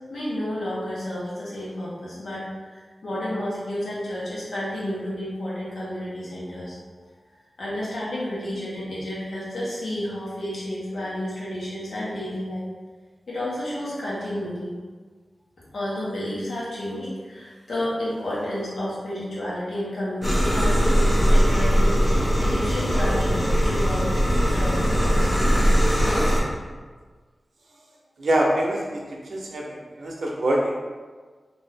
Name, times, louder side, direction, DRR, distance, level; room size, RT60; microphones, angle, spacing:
voice 1, 0.1-6.8 7.6-12.6 13.3-14.8 15.7-24.2 24.5-24.8 25.1-25.6, left 1 dB, 75° left, -7 dB, 1.0 m, -31 dB
sound 1, 20.2-26.4, equal, 35° left, 0.7 m, -20 dB
voice 2, 28.2-30.8, right 1 dB, 75° right, -2 dB, 0.6 m, -25 dB
2.7 x 2.6 x 3.3 m, 1.4 s
wide cardioid pair, 120°, 0 cm